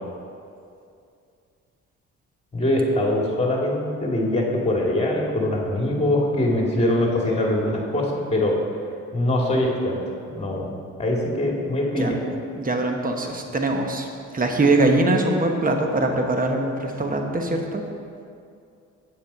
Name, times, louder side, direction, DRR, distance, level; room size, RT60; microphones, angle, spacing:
voice 1, 2.5-8.5 9.1-10.0 10.4-10.7 11.0-12.2, left 1 dB, 20° left, -2 dB, 2.3 m, -23 dB
voice 2, 12.5-14.1 14.3-17.8, right 2 dB, 30° right, 3 dB, 1.2 m, -22 dB
8.6 x 7.3 x 5.5 m, 2.4 s
cardioid pair, 90°, 30 cm